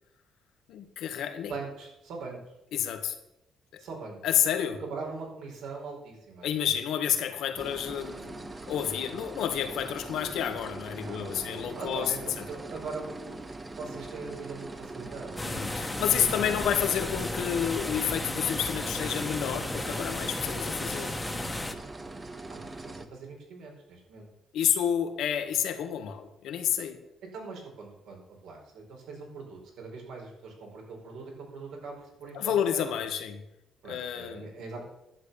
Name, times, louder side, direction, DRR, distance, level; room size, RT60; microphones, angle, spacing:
voice 1, 0.7-1.5 2.7-3.1 3.7-3.8 4.2-4.8 6.4-12.4 15.4-21.1 24.5-27.0 32.3-33.4 33.8-34.5, left 9 dB, 80° left, 7 dB, 1.5 m, -30 dB
voice 2, 1.4-2.4 3.8-4.2 4.8-6.5 10.9-13.4 13.8-15.5 16.1-16.5 22.5-24.3 27.3-33.0 33.8-34.9, right 4 dB, 85° right, 0 dB, 4.4 m, -41 dB
sound 1, 7.6-23.1, right 2 dB, 25° right, 1.3 m, -42 dB
sound 2, 15.4-21.7, left 1 dB, 10° left, 1.3 m, -34 dB
11.0 x 8.2 x 6.9 m, 0.86 s
cardioid pair, 90°, 0 cm